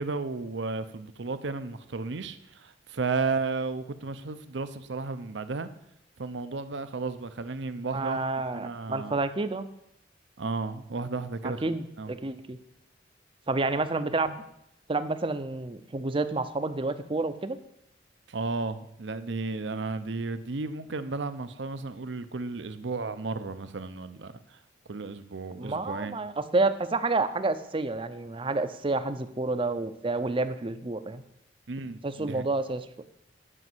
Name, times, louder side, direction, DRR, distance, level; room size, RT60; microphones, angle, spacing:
voice 1, 0.0-5.7 6.2-8.2 8.5-9.1 10.4-12.1 18.3-24.6 24.9-26.2 31.7-32.5, right 3 dB, 70° right, 12 dB, 0.7 m, -33 dB
voice 2, 7.9-9.7 11.4-12.6 13.5-14.4 14.9-17.6 25.6-31.2 32.0-32.8, right 3 dB, 30° right, 12 dB, 0.6 m, -29 dB
9.9 x 5.4 x 7.8 m, 0.78 s
head